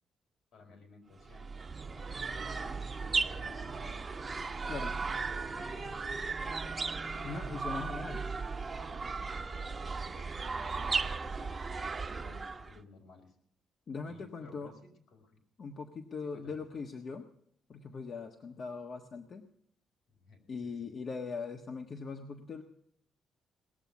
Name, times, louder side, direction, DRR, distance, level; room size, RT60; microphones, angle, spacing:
voice 1, 0.5-1.5 1.9-2.7 3.0-4.1 5.2-6.7 8.0-8.4 9.5-11.6 12.1-13.3 14.0-15.4 16.3-16.6 20.1-20.9, left 3 dB, 75° left, 2 dB, 4.4 m, -56 dB
sound 1, 1.2-12.8, right 4 dB, 30° right, 1.2 m, -36 dB
voice 2, 4.7-5.0 7.2-8.2 13.9-14.7 15.6-17.3 17.7-19.4 20.5-22.6, left 4 dB, 50° left, 4 dB, 1.3 m, -40 dB
19.0 x 7.1 x 9.4 m, 0.69 s
cardioid pair, 90°, 0 cm